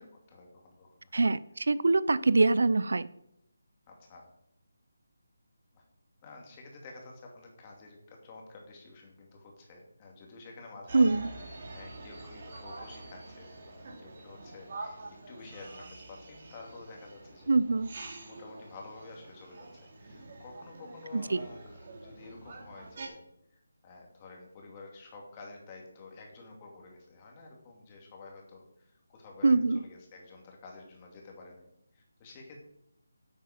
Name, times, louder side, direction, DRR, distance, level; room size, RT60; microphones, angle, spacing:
voice 1, 0.0-1.2 3.9-4.3 5.7-5.8 6.2-15.0 15.3-17.5 18.2-23.2 23.5-32.6, left 3 dB, 20° left, 0 dB, 2.4 m, -50 dB
voice 2, 1.7-3.0 10.9-11.3 17.5-17.9 21.1-21.4 29.4-29.8, right 3 dB, 70° right, 18 dB, 0.5 m, -24 dB
sound 1, 10.9-23.1, right 2 dB, 40° right, 2.9 m, -46 dB
10.0 x 8.2 x 5.1 m, 0.76 s
figure-of-eight pair, 170°, 0 cm